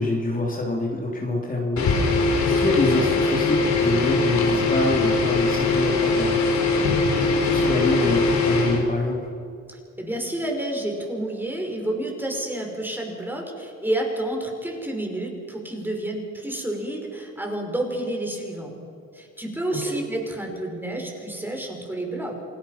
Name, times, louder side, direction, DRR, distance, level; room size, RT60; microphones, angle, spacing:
voice 1, 0.0-1.9 2.4-6.9 7.3-9.2 19.8-19.9, left 2 dB, 25° left, -1 dB, 3.3 m, -25 dB
sound 1, 1.8-8.8, left 3 dB, 65° left, 4.7 m, -21 dB
voice 2, 10.0-18.7 19.1-22.4, right 1 dB, 5° right, 1 dB, 5.7 m, -29 dB
28.0 x 18.5 x 5.9 m, 2.5 s
cardioid pair, 90°, 30 cm